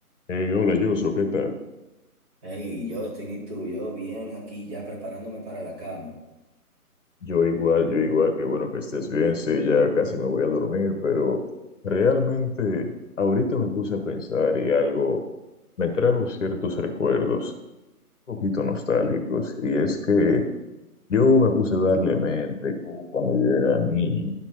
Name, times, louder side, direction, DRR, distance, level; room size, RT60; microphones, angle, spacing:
voice 1, 0.3-1.5 7.2-11.4 11.8-12.9 13.2-15.2 15.8-17.5 18.3-20.4 21.1-24.3, left 4 dB, 55° left, 5 dB, 1.2 m, -23 dB
voice 2, 2.4-6.1, equal, 25° right, -4 dB, 2.3 m, -34 dB
11.0 x 4.5 x 5.6 m, 1.0 s
hypercardioid pair, 160°, 45 cm